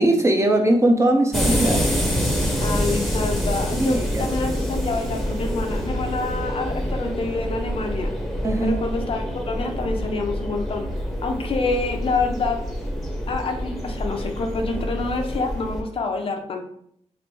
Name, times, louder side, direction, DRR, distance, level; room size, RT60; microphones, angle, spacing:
voice 1, 0.0-1.8 3.7-4.3 8.4-8.8, right 1 dB, 25° right, 3 dB, 0.5 m, -20 dB
sound 1, 1.3-15.8, equal, ahead, 0.8 m, -26 dB
voice 2, 2.6-8.1 8.6-10.9 11.2-12.6 13.3-16.6, left 3 dB, 50° left, 4 dB, 0.6 m, -27 dB
3.1 x 2.5 x 4.4 m, 0.69 s
wide cardioid pair, 130°, 12 cm